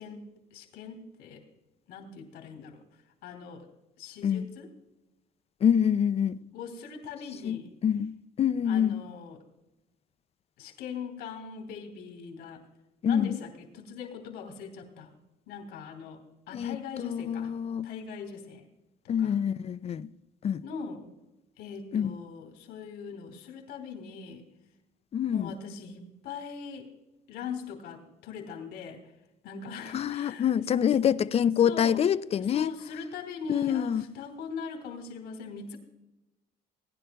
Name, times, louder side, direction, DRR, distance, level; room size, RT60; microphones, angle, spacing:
voice 1, 0.0-1.4 1.9-2.8 3.2-3.7 4.0-4.7 6.5-7.7 8.7-9.4 10.6-12.7 13.0-15.1 15.5-17.5 17.8-18.6 19.0-19.4 20.6-21.1 21.6-24.4 25.3-26.9 27.3-29.0 29.4-30.5 31.6-32.0 32.4-35.8, left 6 dB, 90° left, 2.9 m, -41 dB
voice 2, 5.6-6.4 7.4-8.1 8.4-9.0 13.0-13.4 16.5-17.9 19.1-20.1 20.4-20.6 21.9-22.2 25.1-25.5 29.9-32.7 33.5-34.0, left 8 dB, 35° left, 0.4 m, -26 dB
20.0 x 10.5 x 2.3 m
cardioid pair, 110°, 17 cm